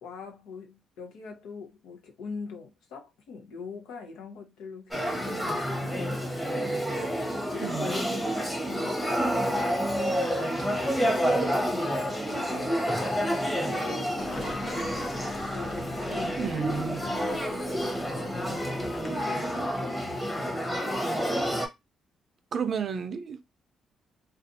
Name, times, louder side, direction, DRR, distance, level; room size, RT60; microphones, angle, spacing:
voice 1, 0.0-12.9 13.6-15.1 15.5-18.8 19.2-21.2, left 5 dB, 90° left, 0.9 m, -43 dB
Male speech man speaking / Child speech kid speaking / Conversation, 4.9-21.7, equal, 10° left, 1.0 m, -29 dB
voice 2, 7.6-7.9 16.4-17.0 22.5-23.4, right 7 dB, 50° right, 0.5 m, -31 dB
Car passing by / Engine, 14.2-20.7, left 3 dB, 35° left, 0.8 m, -42 dB
2.5 x 2.3 x 2.6 m
cardioid pair, 90°, 0 cm